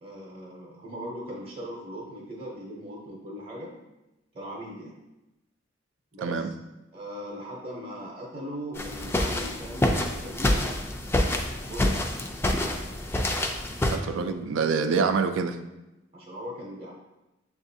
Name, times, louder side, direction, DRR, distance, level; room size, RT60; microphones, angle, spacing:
voice 1, 0.0-3.7 4.3-4.9 6.1-6.5 6.9-10.7 11.7-12.1 16.1-16.9, equal, 30° right, -3 dB, 0.7 m, -39 dB
sound 1, 8.8-14.0, left 1 dB, 15° left, 0.3 m, -27 dB
voice 2, 13.9-15.6, right 5 dB, 80° right, 8 dB, 0.4 m, -26 dB
6.8 x 2.4 x 2.6 m, 0.98 s
head